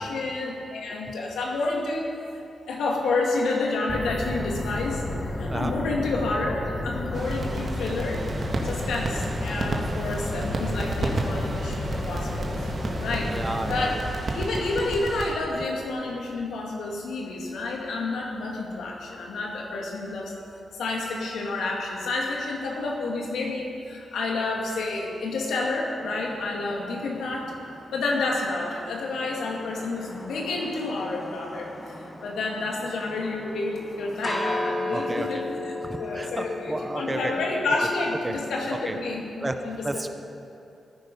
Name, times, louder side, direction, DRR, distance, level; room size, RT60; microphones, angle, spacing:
voice 1, 0.0-5.1 5.4-8.2 8.6-12.7 13.0-13.3 13.7-14.0 14.3-20.3 20.7-27.5 27.9-31.9 32.2-35.7 36.0-40.1, left 3 dB, 80° left, -1 dB, 2.2 m, -29 dB
sound 1, 3.9-13.9, left 1 dB, 30° left, 1.7 m, -32 dB
sound 2, 7.1-15.3, right 2 dB, 50° right, 1.9 m, -32 dB
voice 2, 13.3-14.1 34.9-35.4 35.8-37.3 38.2-38.4 38.7-39.0 39.4-40.1, right 2 dB, 20° right, 7 dB, 1.0 m, -32 dB
sound 3, 26.0-39.3, left 2 dB, 15° left, 1.6 m, -37 dB
16.0 x 9.4 x 5.4 m, 2.6 s
supercardioid pair, 50°, 0 cm